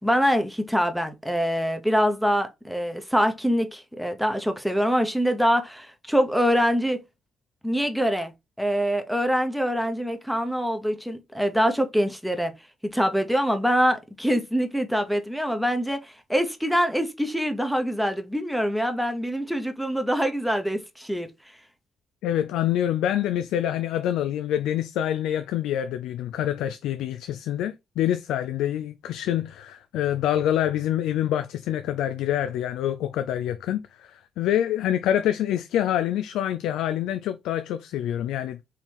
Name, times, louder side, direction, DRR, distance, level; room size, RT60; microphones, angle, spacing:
voice 1, 0.0-7.0 7.6-8.3 8.6-12.5 12.9-21.3, equal, ahead, 0.9 m, -24 dB
voice 2, 22.2-38.6, left 11 dB, 90° left, 0.4 m, -26 dB
4.6 x 3.0 x 3.4 m
cardioid pair, 90°, 0 cm